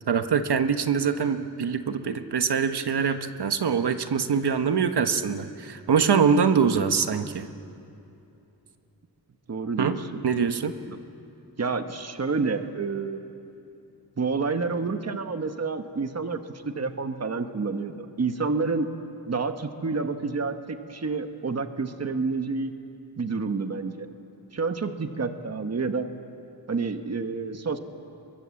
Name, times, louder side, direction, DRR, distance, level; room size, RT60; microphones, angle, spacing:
voice 1, 0.1-7.4 9.8-9.9 10.2-10.7, right 6 dB, 80° right, 8 dB, 1.3 m, -24 dB
voice 2, 9.5-10.2 10.9-11.0 11.6-13.2 14.2-16.4 16.6-18.9 19.3-22.7 23.2-24.1 24.5-26.1 26.7-27.8, right 4 dB, 40° right, 8 dB, 1.2 m, -29 dB
27.0 x 23.0 x 7.7 m, 2.7 s
wide cardioid pair, 135°, 39 cm